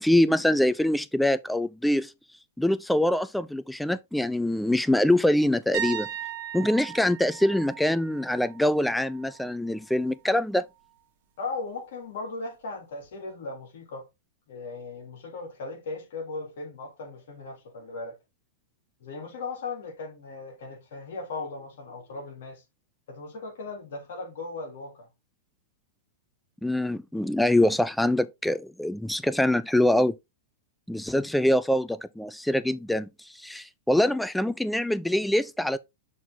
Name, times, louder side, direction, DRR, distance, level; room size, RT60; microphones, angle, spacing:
voice 1, 0.0-2.1 2.6-6.1 6.5-10.7 26.6-30.2 30.9-35.8, left 1 dB, 5° left, 0.5 m, -24 dB
sound 1, 5.7-9.5 9.8-10.2 13.0-13.1, right 11 dB, 60° right, 1.4 m, -37 dB
voice 2, 11.4-14.1 14.5-18.2 19.0-22.6 23.1-25.1, left 3 dB, 65° left, 3.6 m, -37 dB
6.5 x 3.9 x 3.9 m
hypercardioid pair, 110°, 0 cm